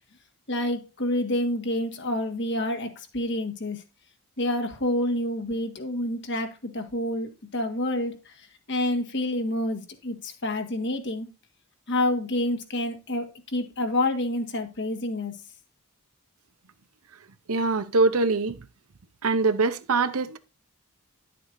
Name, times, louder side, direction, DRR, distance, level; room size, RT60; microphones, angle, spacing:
voice 1, 0.5-3.8 4.4-8.2 8.7-11.3 11.9-15.3, left 1 dB, 55° left, 1.6 m, -28 dB
voice 2, 17.5-18.6 19.2-20.4, right 3 dB, 75° right, 0.8 m, -23 dB
11.0 x 7.6 x 2.6 m
head